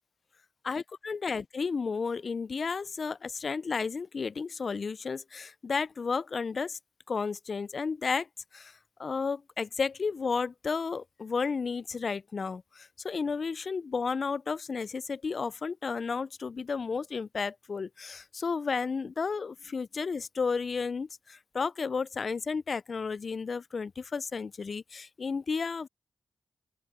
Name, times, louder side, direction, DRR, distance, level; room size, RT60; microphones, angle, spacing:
voice 1, 0.6-6.8 7.1-8.3 8.5-8.7 9.0-25.9, left 5 dB, 60° left, 0.3 m, -32 dB
open air
cardioid pair, 55°, 0 cm